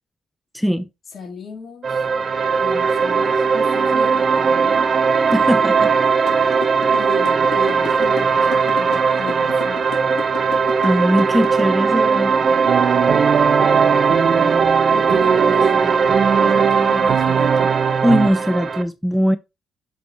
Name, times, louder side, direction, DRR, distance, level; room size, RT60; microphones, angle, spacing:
voice 1, 0.5-0.9 5.3-6.2 10.8-12.3 18.0-19.4, equal, ahead, 0.4 m, -20 dB
voice 2, 1.1-2.1 2.6-4.9 7.0-9.9 10.9-11.0 11.5-11.8 12.0-17.8, left 4 dB, 50° left, 3.0 m, -37 dB
sound 1, 1.8-18.8, right 5 dB, 40° right, 0.9 m, -18 dB
sound 2, 6.3-11.6, left 9 dB, 90° left, 1.8 m, -32 dB
sound 3, 12.7-18.3, right 7 dB, 60° right, 0.5 m, -20 dB
8.0 x 3.3 x 4.4 m
cardioid pair, 90°, 0 cm